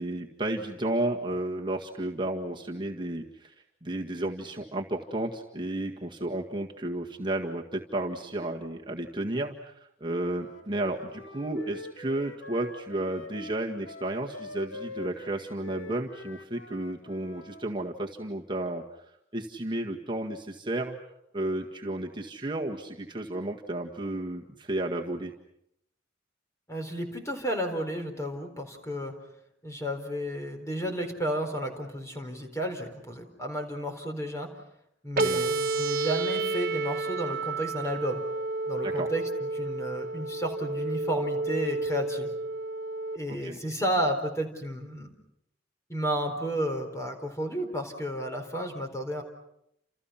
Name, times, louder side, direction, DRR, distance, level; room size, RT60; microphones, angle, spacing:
voice 1, 0.0-3.5 3.8-18.8 19.3-21.0 21.3-25.3 35.1-35.5 38.8-39.1 43.3-43.6, right 1 dB, 25° right, 0 dB, 1.8 m, -32 dB
Wind instrument woodwind instrument, 10.2-17.7, left 3 dB, 80° left, 2.0 m, -45 dB
voice 2, 26.7-29.1 29.6-34.5 35.0-38.2 38.7-42.3 43.1-45.1 45.9-49.2, equal, 15° left, 4 dB, 4.2 m, -32 dB
sound 1, 35.2-43.2, right 3 dB, 50° right, 1.6 m, -30 dB
30.0 x 28.5 x 5.8 m, 0.77 s
head